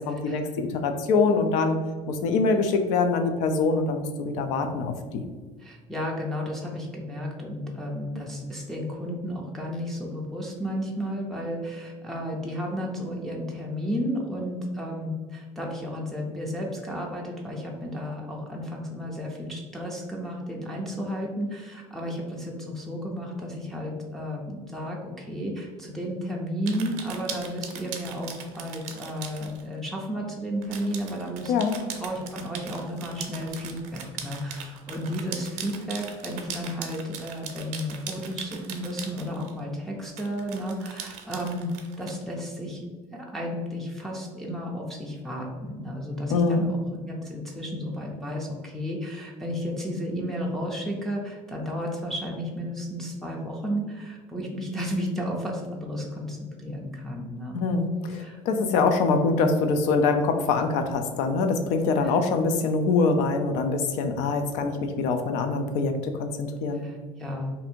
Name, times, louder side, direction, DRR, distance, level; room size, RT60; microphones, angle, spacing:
voice 1, 0.1-1.8 2.1-5.2 31.5-31.7 46.3-46.7 57.5-66.8, left 4 dB, 70° left, 6 dB, 0.4 m, -24 dB
voice 2, 5.6-31.5 32.0-41.7 42.0-42.8 43.1-46.8 47.1-57.7 58.1-58.4 62.0-62.2 66.8-67.5, equal, 5° left, -3 dB, 0.4 m, -33 dB
sound 1, 26.7-29.6 30.6-39.6 40.2-42.1, right 7 dB, 80° right, 0.6 m, -39 dB
2.6 x 2.6 x 4.2 m, 1.4 s
cardioid pair, 175°, 12 cm